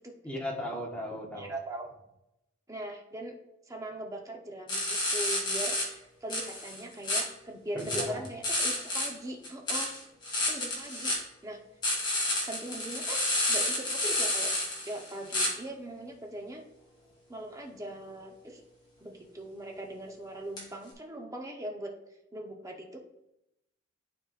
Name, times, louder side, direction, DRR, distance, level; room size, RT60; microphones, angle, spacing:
voice 1, 0.2-1.5 7.7-8.2, equal, 5° left, -1 dB, 1.4 m, -36 dB
voice 2, 1.3-1.9 2.7-3.4 3.7-9.9 10.5-11.2 11.4-11.6 12.4-13.2 13.5-14.5 14.8-16.6 17.3-18.6 19.0-21.9 22.3-23.0, right 1 dB, 15° right, 1 dB, 0.9 m, -40 dB
sound 1, 4.7-5.9 6.3-7.2 7.8-9.1 9.4-11.2 11.8-15.5 20.6-20.7, left 1 dB, 25° left, 2.3 m, -30 dB
12.0 x 4.3 x 2.5 m, 0.84 s
head